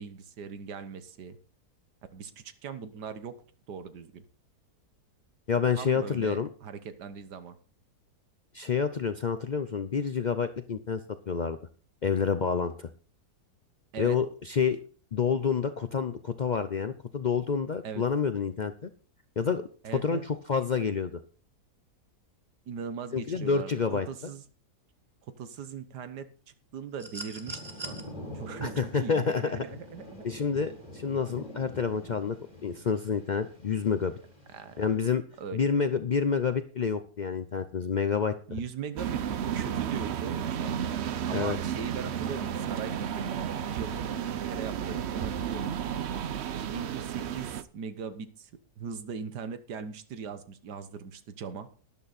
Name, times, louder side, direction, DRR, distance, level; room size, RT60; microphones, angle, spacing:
voice 1, 0.0-1.4 2.1-3.4 3.7-4.2 5.7-7.6 13.9-14.2 17.8-18.0 19.8-20.3 22.7-24.4 25.4-26.3 26.7-28.0 28.3-30.4 34.5-34.8 35.4-35.6 38.5-39.2 39.5-41.0 41.3-43.5 43.7-46.0 46.6-48.5 48.8-51.7, right 6 dB, 85° right, 11 dB, 1.7 m, -40 dB
voice 2, 5.5-6.5 8.5-11.0 11.3-11.6 12.0-12.9 14.0-14.8 15.1-18.9 19.4-19.6 19.9-21.2 23.1-24.1 28.6-29.6 30.2-32.4 32.6-34.1 34.8-35.2 35.5-38.3 41.3-41.6, left 6 dB, 85° left, 10 dB, 0.4 m, -28 dB
sound 1, 27.0-28.0 29.5-29.7, right 3 dB, 25° right, 1.9 m, -40 dB
Thunder / Rain, 27.4-35.0, left 1 dB, 25° left, 5.7 m, -46 dB
sound 2, 39.0-47.6, right 9 dB, 55° right, 0.8 m, -32 dB
12.5 x 10.5 x 4.1 m, 0.40 s
omnidirectional pair, 1.7 m